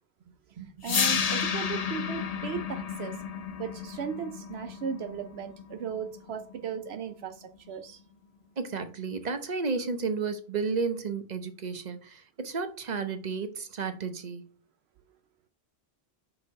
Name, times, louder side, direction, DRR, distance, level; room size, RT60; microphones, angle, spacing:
sound 1, 0.8-6.9, left 6 dB, 40° left, 0.7 m, -32 dB
voice 1, 0.8-3.2 3.6-8.0, right 7 dB, 80° right, 0.9 m, -36 dB
voice 2, 8.6-14.5, right 4 dB, 45° right, 1.0 m, -32 dB
6.2 x 5.4 x 4.7 m
omnidirectional pair, 1.1 m